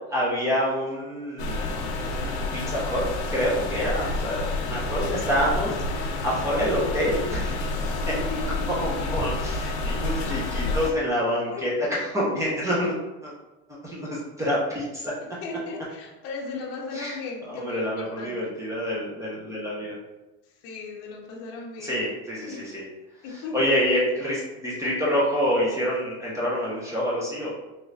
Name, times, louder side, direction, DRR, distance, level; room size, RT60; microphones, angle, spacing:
voice 1, 0.1-1.7 2.0-7.7 8.8-13.0 13.2-13.3 13.8-15.1 16.9-17.1 17.5-19.9 21.8-22.8 23.5-27.5, equal, 10° right, -7 dB, 0.6 m, -27 dB
sound 1, 1.4-10.9, left 2 dB, 85° left, 0.7 m, -29 dB
voice 2, 3.8-4.2 7.8-8.9 10.9-11.0 11.5-11.6 15.4-18.5 20.6-22.0 22.5-22.7 23.2-23.7, left 3 dB, 45° left, -2 dB, 0.7 m, -36 dB
3.3 x 2.9 x 2.5 m, 1.0 s
supercardioid pair, 145°, 32 cm